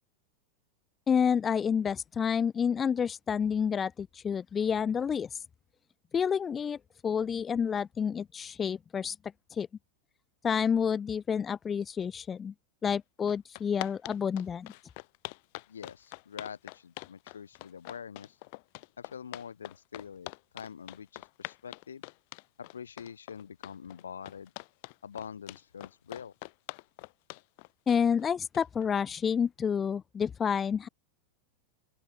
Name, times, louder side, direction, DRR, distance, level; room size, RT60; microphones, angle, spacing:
voice 1, 1.1-5.4 6.1-6.8 7.0-9.2 9.5-9.7 10.4-12.5 12.8-14.7 27.9-30.9, left 7 dB, 20° left, 0.9 m, -29 dB
sound 1, 12.9-13.0 13.3-28.9, left 28 dB, 45° left, 3.7 m, -44 dB
voice 2, 15.7-18.4 19.0-20.3 20.5-22.0 22.6-24.5 25.0-26.3, left 7 dB, 70° left, 7.1 m, -45 dB
open air
figure-of-eight pair, 90°, 0 cm